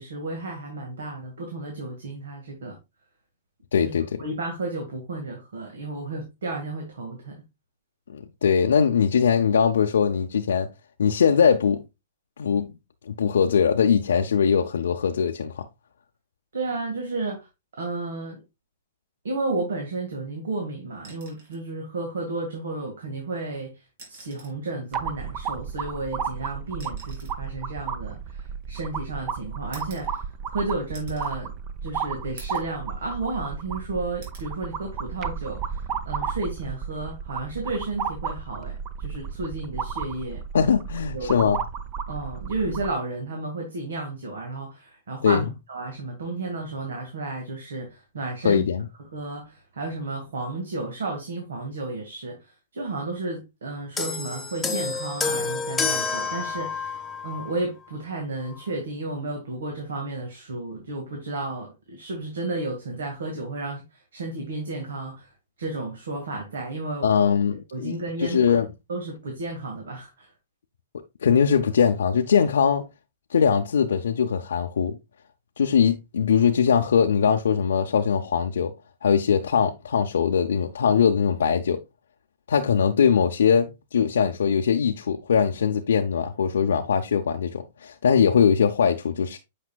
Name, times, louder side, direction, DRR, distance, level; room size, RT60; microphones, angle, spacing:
voice 1, 0.0-2.8 3.8-3.9 4.2-7.4 16.5-17.5 17.8-18.4 19.2-23.8 24.1-30.2 30.5-31.5 31.8-40.4 41.1-41.5 42.1-48.7 49.1-65.3 65.6-67.1 67.7-68.6 68.9-70.3, right 2 dB, 90° right, 1.9 m, -32 dB
voice 2, 3.7-4.2 8.1-10.7 11.0-11.8 12.4-12.6 13.1-15.7 40.5-41.6 45.2-45.4 48.4-48.9 67.0-68.7 71.2-72.8 73.3-75.0 75.6-78.7 79.0-81.8 82.5-89.4, left 7 dB, 90° left, 0.6 m, -21 dB
sound 1, 21.0-21.7 23.1-23.2 23.9-24.7 25.8-28.9 29.7-30.6 30.9-31.4 31.8-31.9 32.4-32.8 33.2-33.8 34.2-34.5 36.0-36.2, right 3 dB, 65° right, 3.4 m, -49 dB
sound 2, 24.9-42.9, right 7 dB, 30° right, 0.7 m, -33 dB
sound 3, 54.0-57.6 58.5-58.6, left 5 dB, 10° left, 0.9 m, -29 dB
8.4 x 5.4 x 2.3 m
hypercardioid pair, 145°, 0 cm